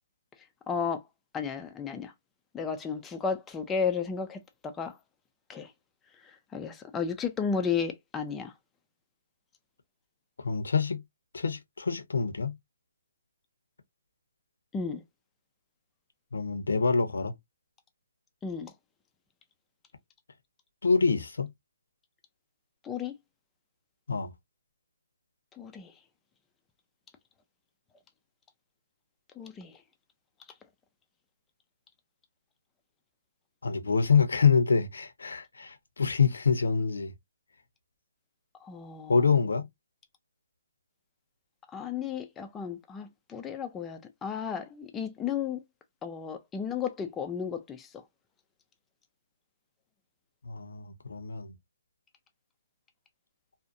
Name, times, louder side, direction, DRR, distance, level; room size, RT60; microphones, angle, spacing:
voice 1, 0.7-1.0 1.3-2.1 2.5-5.0 5.5-5.7 6.2-8.5 14.7-15.0 18.4-18.7 22.8-23.1 25.5-25.9 29.4-29.7 38.6-39.2 41.7-45.6 46.0-48.0, left 6 dB, 10° left, 0.3 m, -33 dB
voice 2, 10.4-11.0 11.3-12.6 16.3-17.3 20.8-21.5 24.1-24.3 33.6-37.1 39.1-39.7 50.4-51.5, left 5 dB, 85° left, 0.7 m, -26 dB
2.6 x 2.1 x 2.5 m
hypercardioid pair, 155°, 0 cm